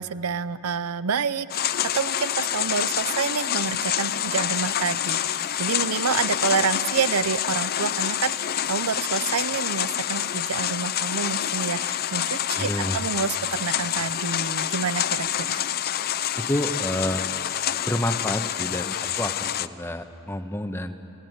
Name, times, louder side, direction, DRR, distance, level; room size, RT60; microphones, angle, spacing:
voice 1, 0.0-15.6, right 5 dB, 80° right, 15 dB, 0.7 m, -28 dB
sound 1, 1.5-19.7, left 10 dB, 45° left, 0.5 m, -27 dB
voice 2, 12.5-13.0 16.4-17.2 17.9-20.9, left 1 dB, 10° left, 7 dB, 1.1 m, -29 dB
30.0 x 16.5 x 9.4 m, 2.8 s
head